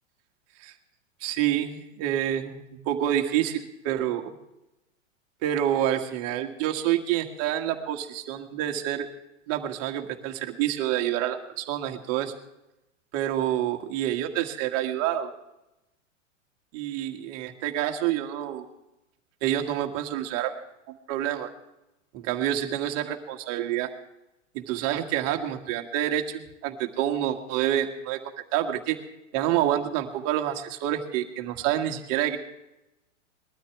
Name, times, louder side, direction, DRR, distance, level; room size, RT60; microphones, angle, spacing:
voice 1, 1.2-4.3 5.4-9.1 9.5-12.3 13.1-15.3 16.7-18.7 19.4-20.5 20.9-21.5 22.1-23.9 24.5-28.2 28.5-29.0 29.3-32.4, right 11 dB, 40° right, 5 dB, 1.8 m, -28 dB
21.0 x 13.0 x 3.6 m, 0.92 s
hypercardioid pair, 105°, 38 cm